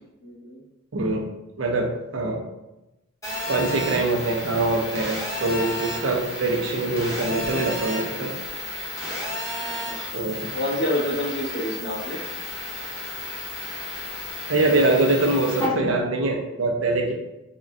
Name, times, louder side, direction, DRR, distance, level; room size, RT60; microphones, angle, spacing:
voice 1, 0.2-0.6 9.6-12.2, left 1 dB, 55° left, -6 dB, 1.0 m, -29 dB
voice 2, 0.9-1.2 1.6-2.4 3.5-8.3 10.1-10.6 14.5-17.1, right 2 dB, 80° right, 2 dB, 0.5 m, -23 dB
Telephone, 3.2-15.7, left 1 dB, 15° left, 0.7 m, -32 dB
3.6 x 2.1 x 2.5 m, 0.95 s
head